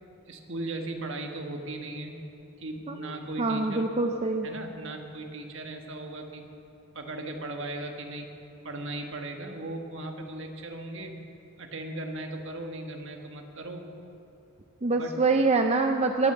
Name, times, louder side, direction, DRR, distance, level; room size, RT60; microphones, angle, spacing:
voice 1, 0.3-2.1 2.6-3.9 4.4-6.4 6.9-8.3 8.6-11.2 11.6-13.9 14.9-15.1, right 2 dB, 60° right, 3 dB, 1.5 m, -37 dB
voice 2, 3.4-4.5 14.8-16.3, right 3 dB, 30° right, 4 dB, 0.5 m, -25 dB
19.5 x 7.0 x 7.9 m, 2.8 s
head